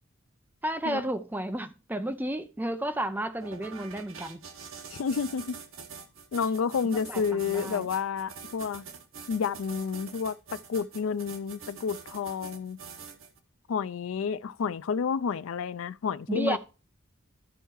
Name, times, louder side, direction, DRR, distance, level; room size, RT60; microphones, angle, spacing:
voice 1, 0.6-4.4 6.8-7.9 16.3-16.6, right 1 dB, 10° right, 0.6 m, -32 dB
sound 1, 3.4-13.4, right 6 dB, 85° right, 1.1 m, -45 dB
voice 2, 4.9-5.6 6.3-8.9 9.3-12.8 13.7-16.6, left 6 dB, 80° left, 0.4 m, -30 dB
12.5 x 4.5 x 4.6 m
head